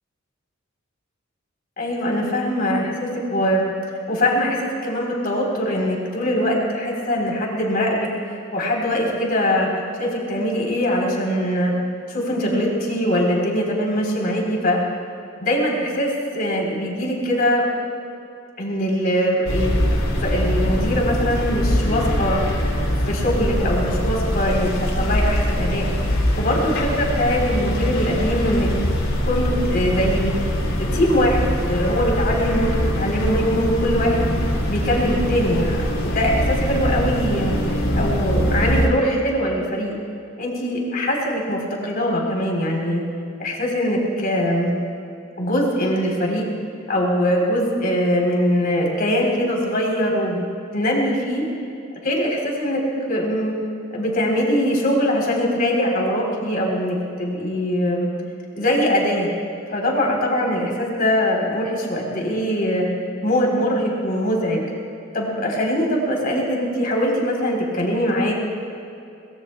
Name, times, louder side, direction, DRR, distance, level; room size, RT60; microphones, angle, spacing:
voice 1, 1.8-3.6 4.1-9.7 10.0-11.7 12.1-14.8 15.4-17.6 18.6-22.4 23.1-25.9 26.4-28.7 29.3-30.5 30.8-34.3 34.7-39.9 40.4-43.0 43.4-44.7 45.4-46.4 46.9-50.4 50.7-51.5 52.0-52.8 53.1-53.5 53.9-58.1 58.6-59.3 59.7-62.9 63.2-64.6 65.1-68.3, equal, 45° left, -1 dB, 3.9 m, -22 dB
sound 1, 19.5-38.9, equal, 90° left, 3.1 m, -23 dB
23.5 x 21.0 x 2.3 m, 2.7 s
head